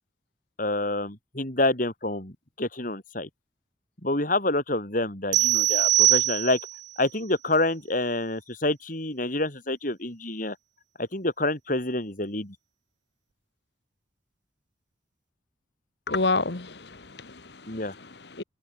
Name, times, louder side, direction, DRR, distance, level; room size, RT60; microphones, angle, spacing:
voice 1, 0.6-3.3 4.0-6.6 7.0-10.6 11.0-12.5 17.7-17.9, left 2 dB, 50° left, 4.9 m, -27 dB
sound 1, 5.3-6.9, right 16 dB, 85° right, 0.6 m, -22 dB
voice 2, 16.1-18.4, left 3 dB, 70° left, 1.6 m, -30 dB
head